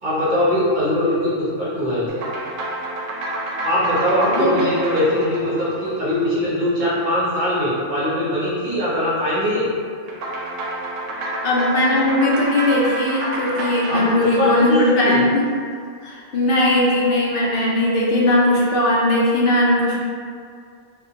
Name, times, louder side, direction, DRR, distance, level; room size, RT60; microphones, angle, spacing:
voice 1, 0.0-2.2 3.6-9.7 13.9-15.2, left 1 dB, 50° right, -8 dB, 0.7 m, -21 dB
sound 1, 2.1-6.7 10.1-15.5, right 1 dB, 80° right, 0.9 m, -29 dB
voice 2, 11.4-15.4 16.0-20.0, left 1 dB, 60° left, -4 dB, 0.6 m, -18 dB
2.4 x 2.2 x 2.7 m, 2.1 s
omnidirectional pair, 1.3 m